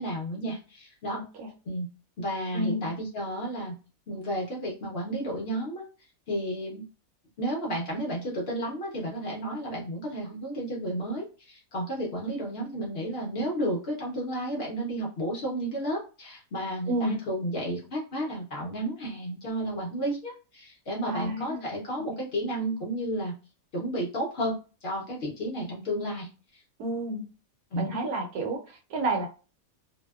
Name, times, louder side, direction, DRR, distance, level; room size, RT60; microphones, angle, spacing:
voice 1, 0.0-1.2 1.7-1.9 2.2-3.7 4.1-5.8 6.3-6.8 7.4-23.3 23.7-24.6 24.8-26.3 27.7-27.9, right 1 dB, 55° left, -2 dB, 0.7 m, -32 dB
voice 2, 1.1-1.5 2.5-2.8 16.9-17.2 21.1-21.7 22.0-22.2 26.8-27.2 27.8-29.3, right 1 dB, 80° right, 2 dB, 1.1 m, -31 dB
2.6 x 2.1 x 2.3 m, 0.33 s
omnidirectional pair, 1.6 m